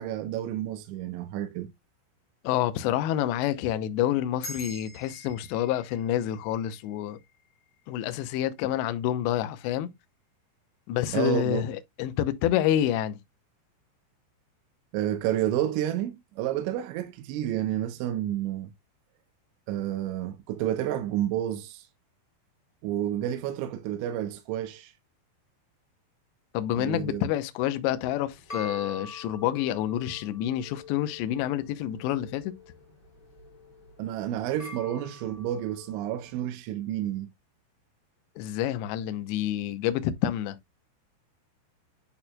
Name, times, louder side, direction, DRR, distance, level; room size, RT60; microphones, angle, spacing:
voice 1, 0.0-1.7 11.1-11.6 14.9-18.7 19.7-21.9 22.8-24.9 26.8-27.2 34.0-37.3, right 11 dB, 80° right, 3.0 m, -30 dB
voice 2, 2.4-7.2 7.9-9.9 10.9-13.2 26.5-32.5 38.4-40.6, left 12 dB, 80° left, 2.8 m, -28 dB
sound 1, 4.4-9.1, left 1 dB, 45° left, 2.5 m, -47 dB
sound 2, 28.0-36.4, left 3 dB, 10° left, 1.7 m, -45 dB
10.5 x 4.2 x 2.3 m
omnidirectional pair, 5.5 m